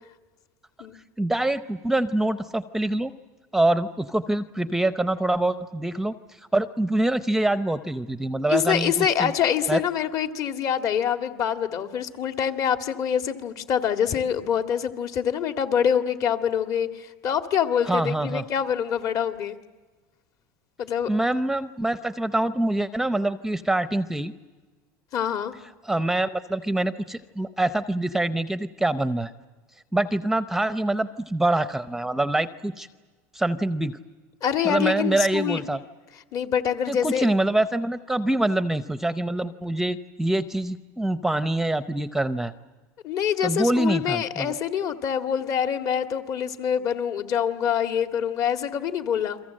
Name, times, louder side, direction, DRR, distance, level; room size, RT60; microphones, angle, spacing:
voice 1, 1.2-3.1 3.5-9.3 9.7-9.8 17.9-18.4 21.1-24.3 25.8-29.3 29.9-32.9 33.3-34.0 34.6-35.8 36.9-42.5 43.4-44.5, right 1 dB, 5° right, 11 dB, 0.7 m, -25 dB
voice 2, 8.5-19.6 20.8-21.1 25.1-25.5 34.4-35.6 36.3-37.3 43.0-49.4, left 8 dB, 45° left, 6 dB, 1.9 m, -25 dB
29.5 x 23.0 x 7.7 m, 1.3 s
supercardioid pair, 130°, 8 cm